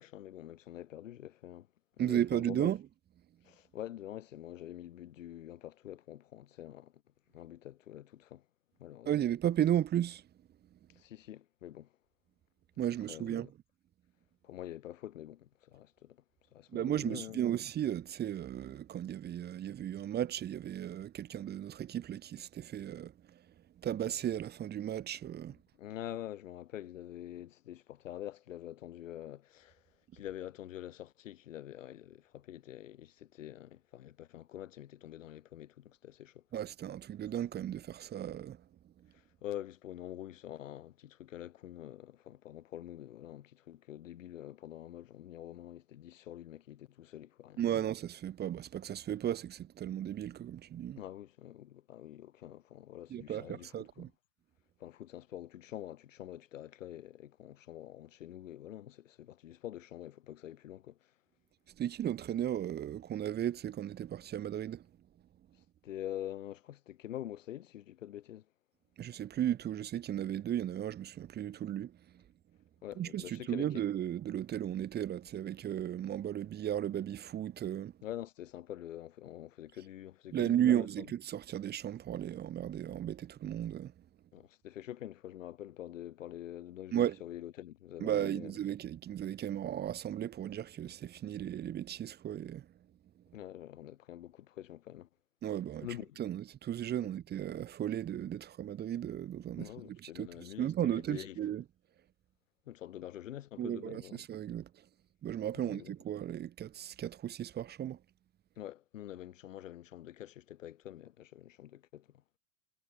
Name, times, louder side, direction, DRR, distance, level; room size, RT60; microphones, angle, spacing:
voice 1, 0.0-1.7 2.0-2.7 3.4-7.0 7.3-8.4 8.8-9.1 10.9-11.9 13.1-13.5 14.4-16.2 16.5-17.4 25.8-29.8 30.1-36.4 39.1-47.8 51.0-54.1 54.8-61.1 65.8-68.5 72.8-73.8 78.0-81.1 84.3-88.5 93.3-95.1 95.8-96.2 99.6-101.4 102.7-104.2 105.6-105.9 108.6-112.2, left 12 dB, 75° left, 7.2 m, -46 dB
voice 2, 2.0-2.8 9.1-10.2 12.8-13.5 16.7-23.4 23.8-25.6 36.5-38.6 47.6-51.0 53.1-54.1 61.8-64.9 69.0-72.2 73.0-77.9 80.3-83.9 86.9-87.2 88.0-92.7 95.4-95.9 96.2-99.7 100.0-101.6 103.6-104.8 105.2-108.0, right 11 dB, 25° right, 2.2 m, -35 dB
hypercardioid pair, 120°, 39 cm